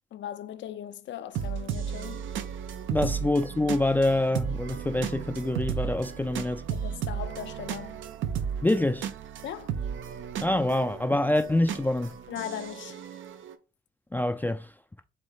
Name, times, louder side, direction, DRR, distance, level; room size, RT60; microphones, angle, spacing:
voice 1, 0.1-2.3 6.7-8.0 9.4-9.7 12.3-13.0, left 10 dB, 65° left, 0.6 m, -38 dB
sound 1, 1.4-13.6, right 8 dB, 75° right, 0.6 m, -34 dB
voice 2, 2.9-6.6 8.6-9.1 10.4-12.1 14.1-14.7, left 1 dB, 10° left, 0.4 m, -26 dB
3.6 x 3.2 x 4.1 m
cardioid pair, 90°, 20 cm